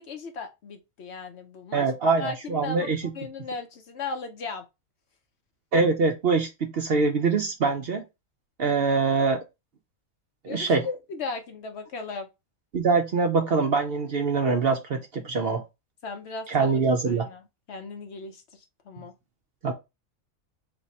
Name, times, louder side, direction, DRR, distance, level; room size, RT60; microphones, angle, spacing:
voice 1, 0.0-1.9 2.2-2.9 3.1-4.6 8.6-8.7 10.5-12.3 16.0-16.8 17.1-17.4 17.7-19.1, left 4 dB, 60° left, 0.9 m, -36 dB
voice 2, 1.7-3.0 5.7-8.0 8.6-9.4 10.4-10.9 12.7-15.6 16.5-17.3 19.6-19.7, right 4 dB, 55° right, 0.7 m, -24 dB
3.5 x 2.9 x 4.1 m
omnidirectional pair, 1.4 m